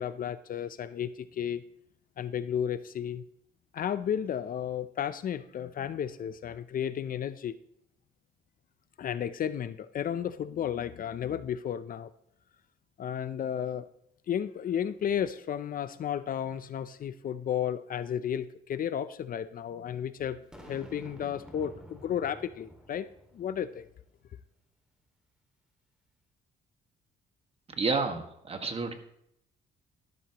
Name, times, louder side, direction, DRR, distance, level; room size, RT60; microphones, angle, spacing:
voice 1, 0.0-1.6 2.2-3.2 3.7-7.6 9.0-12.1 13.0-13.9 14.3-20.4 20.7-23.1 23.3-23.8, left 9 dB, 50° left, 14 dB, 0.6 m, -33 dB
Boom, 20.5-23.8, equal, 5° right, 2.2 m, -50 dB
voice 2, 27.7-28.9, right 4 dB, 30° right, 6 dB, 1.6 m, -30 dB
13.5 x 12.0 x 3.0 m, 0.74 s
cardioid pair, 105°, 19 cm